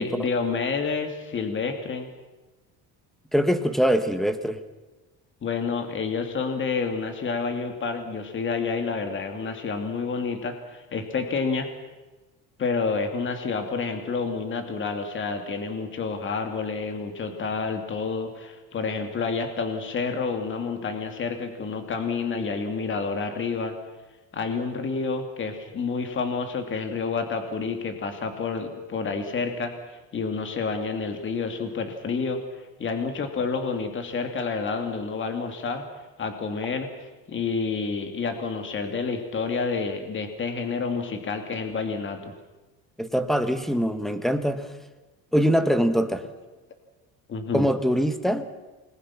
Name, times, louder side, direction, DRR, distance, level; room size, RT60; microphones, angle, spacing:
voice 1, 0.0-2.1 5.4-11.7 12.6-23.7 24.3-32.4 32.8-35.8 36.2-36.9 37.3-42.3 47.3-47.7, left 4 dB, 30° left, 6 dB, 2.6 m, -29 dB
voice 2, 3.3-4.6 43.0-44.7 45.3-46.2 47.5-48.5, equal, ahead, 9 dB, 1.4 m, -23 dB
28.5 x 21.0 x 6.0 m, 1.1 s
cardioid pair, 150°, 37 cm